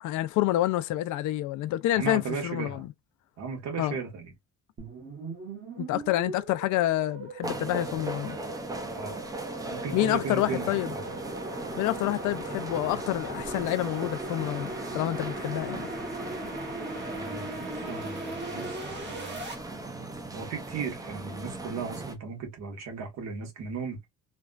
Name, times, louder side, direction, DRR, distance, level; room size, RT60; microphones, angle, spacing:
voice 1, 0.0-2.8 3.8-4.0 5.8-8.4 9.9-10.9 11.8-15.9, left 15 dB, 80° left, 0.5 m, -28 dB
voice 2, 1.9-2.9 3.4-4.3 8.9-9.3 9.7-11.2 17.1-17.5 17.9-19.4 20.3-24.1, right 5 dB, 65° right, 1.3 m, -36 dB
sound 1, 4.8-19.5, right 2 dB, 35° right, 1.3 m, -39 dB
sound 2, 7.4-22.1, right 1 dB, 10° right, 0.5 m, -38 dB
3.3 x 2.3 x 2.4 m
cardioid pair, 155°, 30 cm